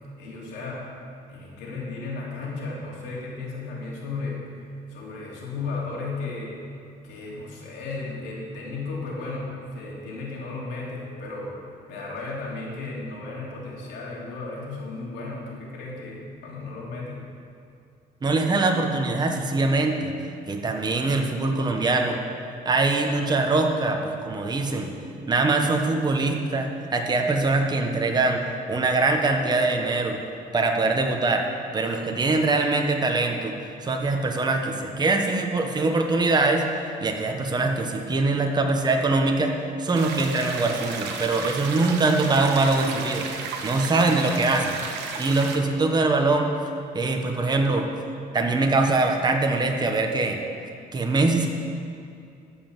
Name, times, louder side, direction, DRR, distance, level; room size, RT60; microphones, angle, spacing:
voice 1, 0.2-0.9 1.3-4.4 4.9-6.6 7.0-11.6 11.9-17.2, left 3 dB, 85° left, -4 dB, 3.0 m, -34 dB
voice 2, 18.2-20.1 20.5-22.2 22.6-24.9 25.3-28.4 28.7-30.2 30.5-31.4 31.7-33.5 33.8-36.6 37.0-39.5 39.8-43.3 43.6-44.8 45.2-46.5 46.9-47.9 48.3-50.4 50.9-51.5, right 3 dB, 25° right, 3 dB, 1.2 m, -23 dB
sound 1, 39.9-45.6, right 5 dB, 90° right, 1.1 m, -34 dB
13.5 x 5.5 x 7.4 m, 2.5 s
cardioid pair, 110°, 17 cm